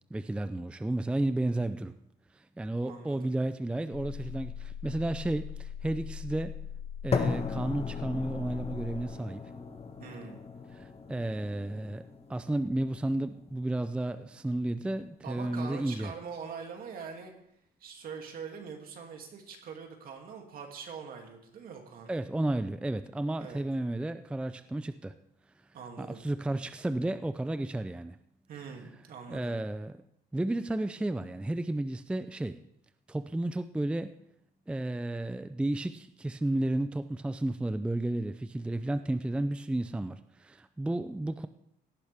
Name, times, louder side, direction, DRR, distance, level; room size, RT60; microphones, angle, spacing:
voice 1, 0.1-1.9 2.3-6.5 7.0-9.4 10.7-12.0 12.3-16.1 22.1-25.1 26.0-28.2 29.3-30.0 30.3-32.6 33.1-34.2 34.7-41.5, right 1 dB, 5° right, 11 dB, 0.4 m, -32 dB
voice 2, 2.8-3.3 10.0-10.4 15.2-17.3 17.8-22.2 23.4-23.6 25.7-26.2 28.5-29.5, right 6 dB, 60° right, 2 dB, 2.6 m, -43 dB
sound 1, 3.9-9.0, left 9 dB, 65° left, 1.3 m, -41 dB
sound 2, 7.1-15.1, left 5 dB, 35° left, 1.3 m, -38 dB
17.5 x 10.0 x 3.5 m, 0.76 s
cardioid pair, 110°, 17 cm